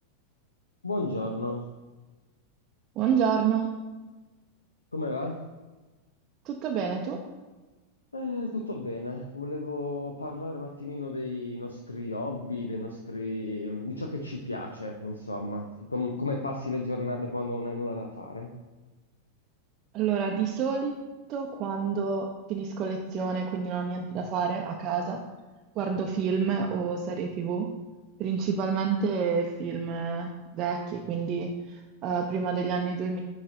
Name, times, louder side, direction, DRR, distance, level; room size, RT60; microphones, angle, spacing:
voice 1, 0.8-1.6 4.9-5.4 8.1-18.5, left 2 dB, 80° left, 2 dB, 0.6 m, -33 dB
voice 2, 3.0-3.7 6.4-7.2 19.9-20.9 21.3-25.2 25.8-27.7 28.2-33.2, right 6 dB, 35° right, 1 dB, 0.6 m, -29 dB
9.4 x 3.2 x 3.8 m, 1.2 s
figure-of-eight pair, 90°, 0 cm